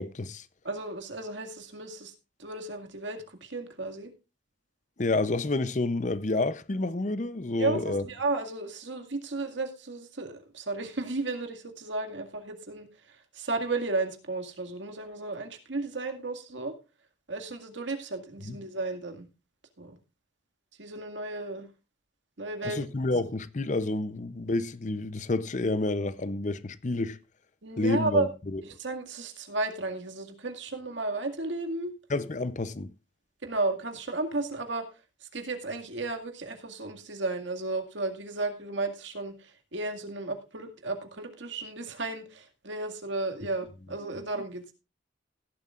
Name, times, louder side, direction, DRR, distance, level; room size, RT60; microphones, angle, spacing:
voice 1, 0.0-0.5 5.0-8.0 18.4-18.6 22.6-27.2 27.8-28.3 32.1-32.9, left 2 dB, 40° left, 0.6 m, -29 dB
voice 2, 0.6-2.1 2.4-4.1 7.6-16.8 17.3-19.2 19.8-20.0 20.8-21.7 22.4-22.8 27.6-28.3 28.6-31.9 33.4-34.9 35.2-44.7, right 2 dB, 75° right, 2.0 m, -33 dB
17.0 x 11.0 x 2.4 m
head